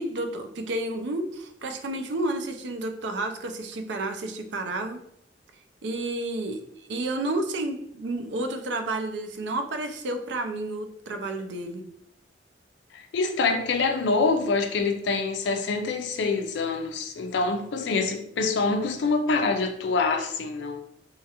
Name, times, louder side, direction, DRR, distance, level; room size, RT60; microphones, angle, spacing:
voice 1, 0.0-5.0 5.8-11.9, right 2 dB, 80° right, 0.4 m, -31 dB
voice 2, 12.9-20.8, left 4 dB, 75° left, 0.4 m, -25 dB
2.9 x 2.4 x 2.8 m
head